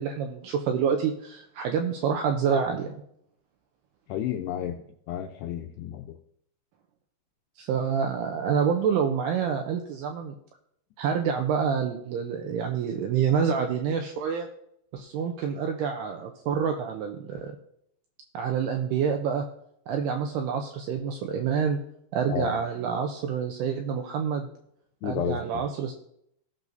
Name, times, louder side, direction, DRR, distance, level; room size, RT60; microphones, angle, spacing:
voice 1, 0.0-3.0 7.6-10.4 11.0-14.5 14.9-17.5 18.3-19.4 19.9-21.8 22.1-24.5 25.0-25.9, right 7 dB, 80° right, 4 dB, 2.3 m, -27 dB
voice 2, 4.1-4.8 5.1-6.1 22.3-22.5 25.0-25.4, left 11 dB, 85° left, 3 dB, 2.4 m, -31 dB
17.5 x 6.2 x 2.6 m, 0.71 s
omnidirectional pair, 5.4 m